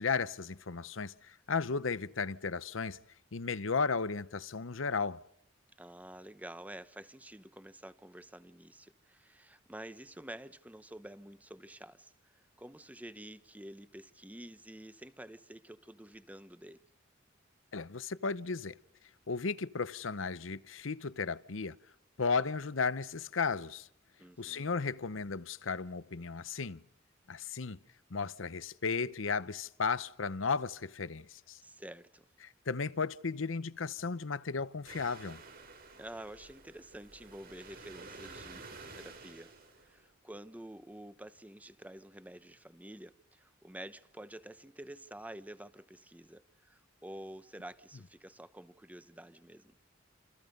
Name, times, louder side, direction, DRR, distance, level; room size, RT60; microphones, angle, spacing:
voice 1, 0.0-3.0 3.3-5.2 17.7-18.8 19.3-21.8 22.2-23.9 24.4-26.8 27.3-27.8 28.1-31.6 32.4-35.4, left 5 dB, 85° left, 0.8 m, -35 dB
voice 2, 5.8-16.8 24.2-24.7 31.6-32.3 36.0-49.8, right 1 dB, 10° right, 0.9 m, -49 dB
sound 1, 34.9-40.1, right 3 dB, 50° right, 6.5 m, -51 dB
28.5 x 27.5 x 5.3 m
head